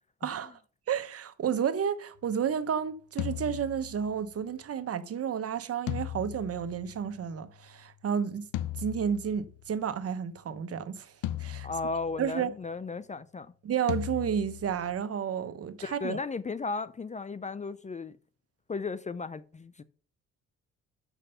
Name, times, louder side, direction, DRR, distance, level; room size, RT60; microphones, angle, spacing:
voice 1, 0.2-0.5 0.9-8.4 8.8-11.1 11.4-11.7 12.2-12.5 13.6-16.2, right 8 dB, 50° right, 1.0 m, -31 dB
sound 1, 3.2-4.4 5.9-7.4 8.5-9.7 11.2-12.5 13.9-15.0, left 13 dB, 80° left, 0.6 m, -37 dB
voice 2, 11.6-13.5 15.8-18.1 18.7-19.8, left 4 dB, 25° left, 0.5 m, -35 dB
6.6 x 6.1 x 6.7 m
cardioid pair, 90°, 30 cm